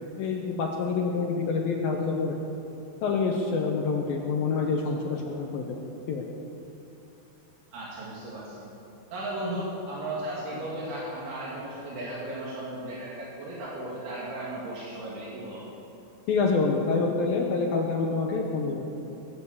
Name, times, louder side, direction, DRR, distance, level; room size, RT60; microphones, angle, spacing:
voice 1, 0.2-2.4 3.0-5.6 6.1-6.3 16.3-18.8, left 4 dB, 80° left, 0 dB, 2.1 m, -27 dB
voice 2, 7.7-8.6 9.1-15.6, right 1 dB, 75° right, -6 dB, 4.7 m, -35 dB
21.0 x 8.5 x 7.2 m, 2.8 s
omnidirectional pair, 5.6 m